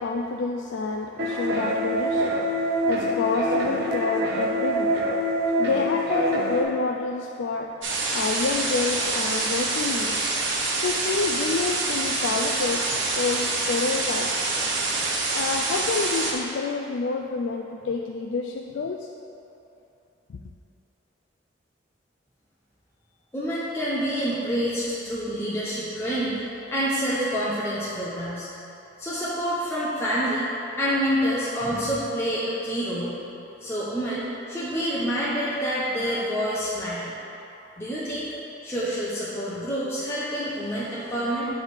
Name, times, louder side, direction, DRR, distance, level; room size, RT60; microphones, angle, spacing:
voice 1, 0.0-5.2 5.5-10.3 10.8-14.5 15.3-19.1 20.3-20.4, left 4 dB, 80° left, 1 dB, 0.4 m, -28 dB
sound 1, 1.2-6.6, equal, 60° right, 0.9 m, -25 dB
sound 2, 7.8-16.3, right 3 dB, 90° right, 1.0 m, -26 dB
voice 2, 23.3-26.4 26.7-28.5 29.0-30.5 30.8-33.2 33.6-37.1 37.8-38.3 38.6-41.5, equal, 15° left, -10 dB, 0.8 m, -27 dB
7.2 x 3.5 x 6.3 m, 2.9 s
head